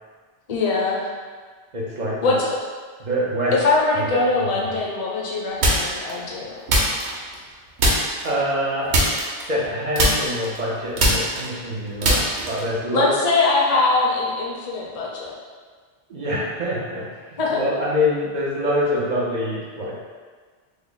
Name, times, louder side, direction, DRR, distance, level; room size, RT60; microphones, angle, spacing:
voice 1, 0.5-1.1 2.2-2.5 3.5-6.6 12.9-15.3 17.4-17.6, left 3 dB, 45° left, -2 dB, 0.5 m, -22 dB
voice 2, 1.7-2.4 3.0-3.5 4.0-4.1 4.4-4.6 8.2-8.9 9.5-13.1 16.1-19.9, equal, 45° right, -6 dB, 0.7 m, -25 dB
sound 1, 5.6-6.1 6.7-7.5 7.8-8.3 8.9-9.7 10.0-12.7, right 1 dB, 75° right, 1.0 m, -20 dB
3.3 x 2.0 x 3.8 m, 1.5 s
omnidirectional pair, 1.1 m